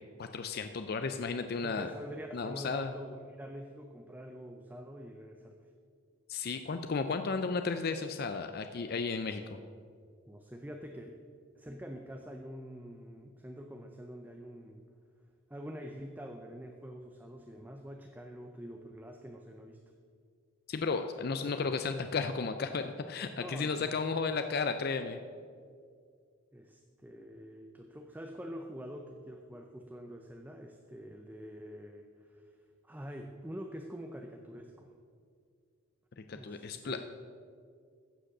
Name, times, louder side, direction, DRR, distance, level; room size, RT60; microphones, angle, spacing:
voice 1, 0.2-1.9 2.3-2.9 6.3-9.6 20.7-25.2 36.2-37.1, left 4 dB, 50° left, 8 dB, 0.4 m, -34 dB
voice 2, 1.6-5.6 10.3-11.2 11.6-14.8 15.5-19.8 21.2-21.7 23.4-23.9 26.5-32.5 32.8-34.9 36.3-37.1, equal, 10° right, 3 dB, 0.5 m, -46 dB
14.5 x 5.1 x 6.5 m, 2.2 s
head